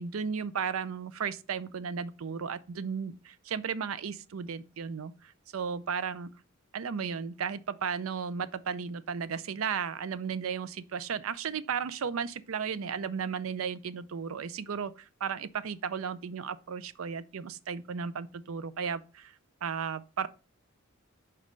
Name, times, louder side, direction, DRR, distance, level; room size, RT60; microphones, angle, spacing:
voice 1, 0.0-6.3 6.7-19.3 19.6-20.3, right 6 dB, 85° right, 0.5 m, -34 dB
5.3 x 4.2 x 5.1 m
head